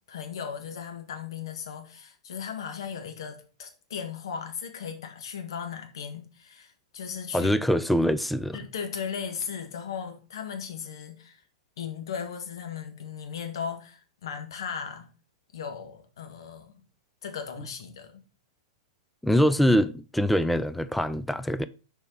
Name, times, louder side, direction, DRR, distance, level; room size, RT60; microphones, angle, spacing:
voice 1, 0.1-7.6 8.5-11.4 11.8-15.1 15.5-16.8 17.2-18.2, left 7 dB, 60° left, 1.7 m, -37 dB
voice 2, 7.3-8.6 19.2-21.7, equal, ahead, 0.4 m, -24 dB
6.7 x 4.9 x 4.6 m
figure-of-eight pair, 100°, 3 cm